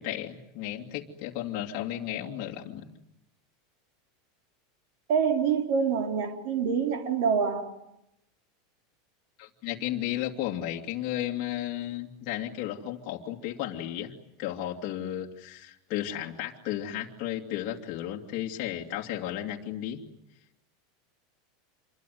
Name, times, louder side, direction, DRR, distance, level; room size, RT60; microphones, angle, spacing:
voice 1, 0.0-2.8 9.4-14.1 14.4-20.0, left 12 dB, 40° left, 2.6 m, -34 dB
voice 2, 5.1-7.7, right 6 dB, 55° right, 3.6 m, -26 dB
27.0 x 23.0 x 9.4 m
supercardioid pair, 170°, 0 cm